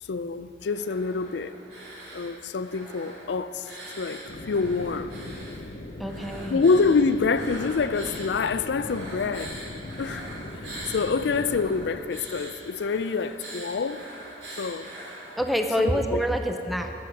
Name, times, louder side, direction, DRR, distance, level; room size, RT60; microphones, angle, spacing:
voice 1, 0.0-1.5 2.1-3.7 4.0-5.1 6.5-9.6 10.0-10.3 10.9-14.0 14.6-14.9 15.8-16.2, left 4 dB, 75° left, 0.4 m, -26 dB
sound 1, 0.6-2.3 2.6-5.6 6.0-8.4 8.7-15.6, right 1 dB, 80° right, 2.6 m, -43 dB
sound 2, 4.3-11.9, left 1 dB, 55° left, 0.8 m, -39 dB
voice 2, 6.0-6.6 15.4-16.9, equal, ahead, 0.5 m, -26 dB
11.5 x 7.9 x 5.9 m
head